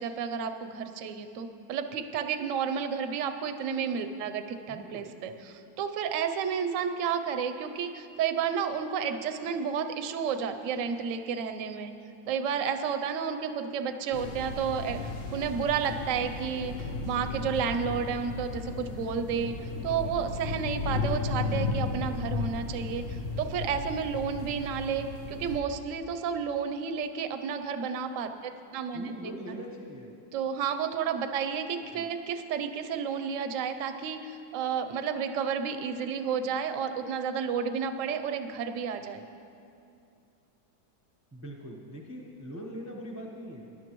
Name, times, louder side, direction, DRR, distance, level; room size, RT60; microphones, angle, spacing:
voice 1, 0.0-11.9 12.3-15.0 15.3-16.7 17.0-19.5 19.8-23.0 23.4-29.1 30.3-39.2, right 7 dB, 60° right, 8 dB, 0.9 m, -31 dB
voice 2, 4.7-5.1 28.9-30.2 31.9-32.0 41.3-43.8, equal, 10° right, -1 dB, 0.6 m, -42 dB
sound 1, 14.1-25.6, left 3 dB, 55° left, 1.0 m, -35 dB
18.5 x 11.5 x 3.1 m, 2.6 s
omnidirectional pair, 1.9 m